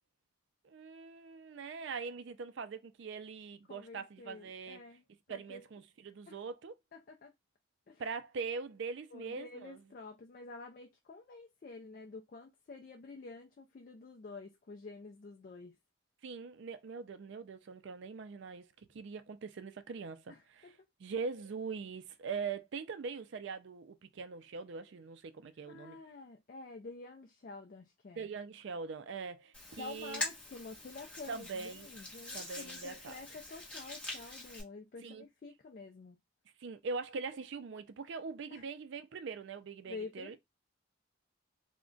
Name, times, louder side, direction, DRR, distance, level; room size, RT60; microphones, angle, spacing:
voice 1, 0.6-4.8 5.3-6.8 8.0-9.8 16.2-20.7 21.0-26.0 28.2-30.2 31.3-31.9 32.3-33.2 35.0-35.2 36.6-40.4, right 5 dB, 65° right, 0.4 m, -42 dB
voice 2, 3.7-5.6 6.3-6.4 6.9-7.3 7.9-8.0 9.1-15.8 20.3-20.7 25.7-28.3 29.7-36.2 38.5-38.6 39.8-40.4, left 3 dB, 45° left, 0.3 m, -49 dB
Hands, 29.5-34.6, left 2 dB, 5° left, 0.9 m, -44 dB
2.3 x 2.1 x 3.7 m
head